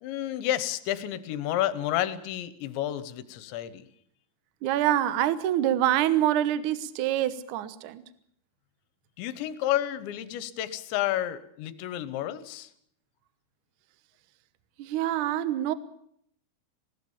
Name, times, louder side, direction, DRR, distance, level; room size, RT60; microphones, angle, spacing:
voice 1, 0.0-3.8 9.2-12.7, left 13 dB, 80° left, 3.3 m, -30 dB
voice 2, 4.6-8.0 14.8-15.7, right 12 dB, 85° right, 1.8 m, -26 dB
20.0 x 18.5 x 7.2 m
omnidirectional pair, 5.3 m